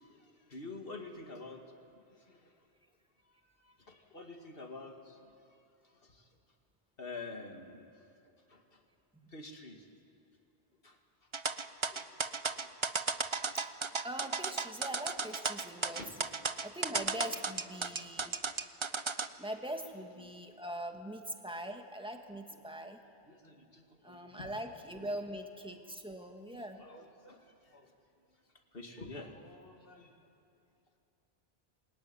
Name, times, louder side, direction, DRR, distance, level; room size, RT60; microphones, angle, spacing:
voice 1, 0.0-1.6 1.9-2.5 3.6-6.3 7.0-8.1 8.5-8.8 9.3-9.9 10.8-11.0 11.9-12.1 12.5-12.7 16.0-16.1 20.2-20.3 23.3-24.5 24.9-25.0 26.5-27.9 28.7-30.2, left 3 dB, 60° left, 3 dB, 2.4 m, -49 dB
sound 1, 11.3-19.3, right 4 dB, 30° right, 0.7 m, -34 dB
voice 2, 14.0-16.0 16.6-18.3 19.4-23.0 24.0-26.8, equal, 5° right, 4 dB, 1.9 m, -42 dB
27.0 x 21.0 x 9.8 m, 2.6 s
omnidirectional pair, 1.1 m